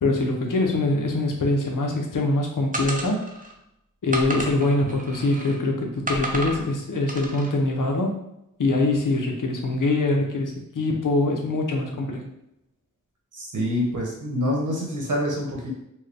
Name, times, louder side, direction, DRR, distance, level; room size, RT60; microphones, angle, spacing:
voice 1, 0.0-3.2 4.0-8.1 8.6-12.2, left 2 dB, 70° left, 1 dB, 0.8 m, -23 dB
sound 1, 2.7-3.5 4.1-5.6 6.1-6.6 7.1-7.5, right 1 dB, 25° right, 0.7 m, -31 dB
voice 2, 13.3-15.7, equal, 65° right, -2 dB, 1.2 m, -26 dB
4.4 x 2.2 x 3.4 m, 0.82 s
wide cardioid pair, 70°, 33 cm